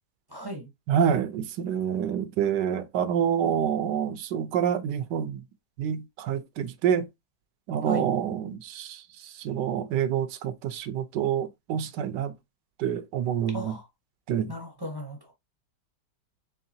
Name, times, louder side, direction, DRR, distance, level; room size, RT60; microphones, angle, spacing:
voice 1, 0.3-0.7 7.8-8.1 13.5-13.9 14.5-15.3, equal, 25° right, 0.6 m, -36 dB
voice 2, 0.9-5.4 5.8-7.1 7.7-12.3 12.8-13.7 14.3-14.5, right 8 dB, 80° right, 1.2 m, -27 dB
4.7 x 3.4 x 2.7 m
omnidirectional pair, 1.8 m